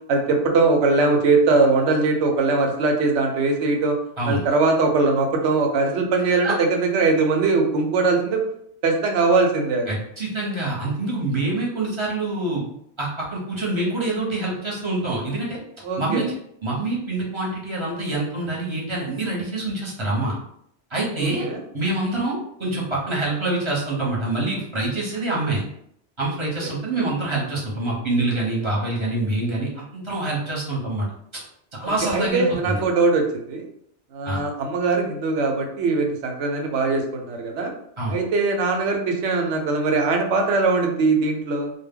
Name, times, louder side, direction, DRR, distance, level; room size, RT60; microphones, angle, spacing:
voice 1, 0.1-3.9 4.3-8.4 8.8-9.9 15.8-16.3 21.2-21.6 26.4-26.5 32.1-33.7 34.1-37.7 38.1-41.7, right 3 dB, 80° right, 3 dB, 0.9 m, -21 dB
voice 2, 9.9-12.6 13.0-15.6 16.0-16.2 16.6-20.3 20.9-21.5 21.7-25.6 26.2-31.1 31.7-32.8 34.2-34.4 38.0-38.1, right 2 dB, 30° right, -5 dB, 0.7 m, -26 dB
2.1 x 2.1 x 3.5 m, 0.70 s
omnidirectional pair, 1.2 m